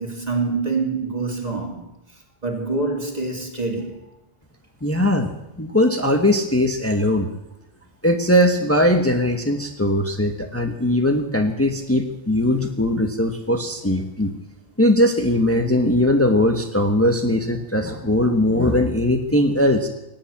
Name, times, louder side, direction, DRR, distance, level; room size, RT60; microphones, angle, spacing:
voice 1, 0.0-1.9 2.4-4.0, right 3 dB, 40° right, 2.6 m, -26 dB
voice 2, 4.8-5.3 5.6-7.3 8.0-14.3 14.8-19.9, left 1 dB, 15° left, 1.2 m, -20 dB
19.0 x 8.8 x 8.6 m
omnidirectional pair, 1.0 m